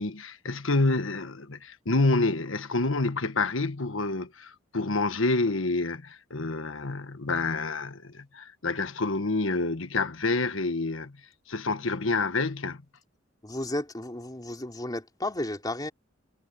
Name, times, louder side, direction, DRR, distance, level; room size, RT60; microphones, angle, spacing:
voice 1, 0.0-11.2 11.5-12.8, left 3 dB, 80° left, 1.5 m, -28 dB
voice 2, 13.4-15.9, left 1 dB, 20° left, 3.5 m, -33 dB
head